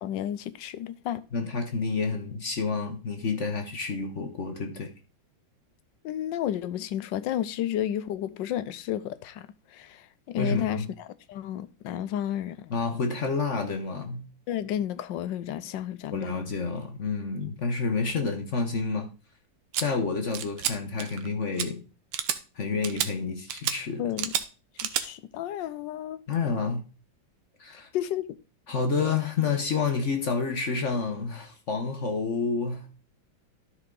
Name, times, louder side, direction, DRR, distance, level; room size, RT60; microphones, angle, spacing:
voice 1, 0.0-1.2 6.0-12.7 14.5-16.4 24.0-24.3 24.8-26.2 27.9-28.3, left 11 dB, 80° left, 1.3 m, -32 dB
voice 2, 1.3-4.9 10.4-10.9 12.7-14.3 16.1-19.1 19.8-21.8 22.5-24.1 26.3-26.9 27.6-27.9 28.7-32.9, left 4 dB, 45° left, 1.1 m, -29 dB
sound 1, 19.7-19.9 20.3-20.7 21.0-21.3 21.6-21.7 22.1-22.4 22.8-23.1 23.5-23.8 24.2-24.4 24.8-25.1, right 10 dB, 80° right, 1.5 m, -29 dB
13.0 x 4.8 x 3.8 m
omnidirectional pair, 2.1 m